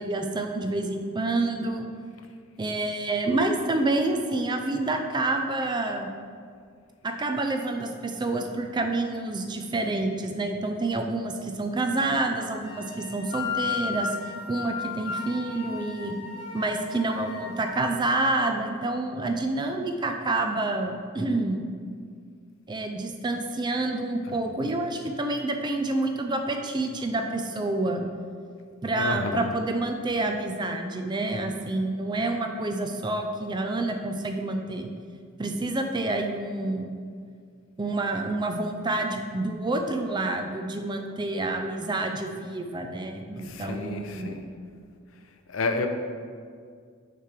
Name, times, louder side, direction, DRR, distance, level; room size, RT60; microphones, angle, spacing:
voice 1, 0.0-1.9 2.6-6.1 7.0-14.1 14.5-16.2 16.5-21.6 22.7-28.0 28.8-34.9 35.4-36.9 37.8-44.3, right 2 dB, 20° right, 5 dB, 0.4 m, -28 dB
sound 1, 12.6-17.9, left 5 dB, 25° left, 1.2 m, -35 dB
voice 2, 29.0-29.6 43.4-44.4 45.5-45.9, left 3 dB, 70° left, 6 dB, 0.5 m, -30 dB
6.6 x 3.2 x 5.9 m, 2.1 s
head